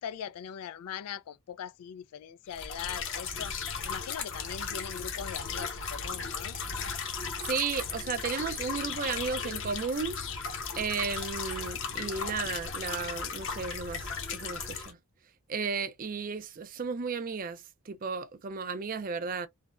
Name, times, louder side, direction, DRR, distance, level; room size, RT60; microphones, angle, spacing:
voice 1, 0.0-3.5 3.8-6.6, left 8 dB, 85° left, 0.3 m, -41 dB
sound 1, 2.5-14.9, left 5 dB, 55° left, 0.8 m, -36 dB
voice 2, 7.4-10.5 10.8-15.0 15.5-19.5, right 5 dB, 40° right, 0.4 m, -34 dB
3.3 x 2.1 x 2.3 m
head